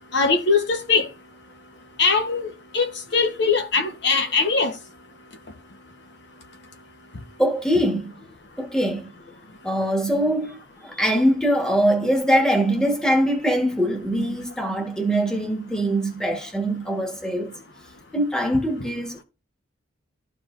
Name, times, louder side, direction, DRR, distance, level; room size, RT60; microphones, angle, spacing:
voice 1, 0.1-1.1 2.0-4.7, left 4 dB, 60° left, 1.0 m, -21 dB
voice 2, 7.4-8.1 8.6-9.1 9.6-17.5 18.1-19.2, equal, 5° left, 1.3 m, -22 dB
12.5 x 4.7 x 2.5 m
head